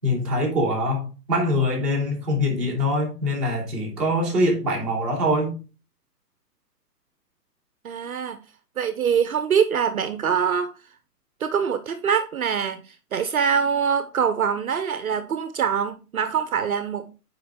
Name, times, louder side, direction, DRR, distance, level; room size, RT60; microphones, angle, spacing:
voice 1, 0.0-5.5, left 1 dB, ahead, 2.7 m, -23 dB
voice 2, 7.8-8.4 8.8-10.7 11.4-17.1, right 7 dB, 60° right, 0.8 m, -24 dB
9.0 x 5.1 x 3.6 m
hypercardioid pair, 180°, 48 cm